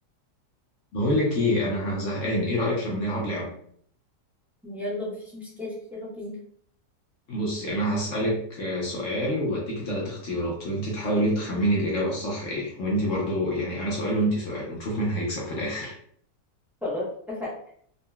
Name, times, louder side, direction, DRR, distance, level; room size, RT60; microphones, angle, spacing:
voice 1, 0.9-3.5 7.3-15.9, equal, 60° left, -3 dB, 0.9 m, -27 dB
voice 2, 4.6-6.4 16.8-17.5, left 1 dB, ahead, -7 dB, 0.5 m, -33 dB
3.7 x 2.1 x 2.2 m, 0.62 s
omnidirectional pair, 1.7 m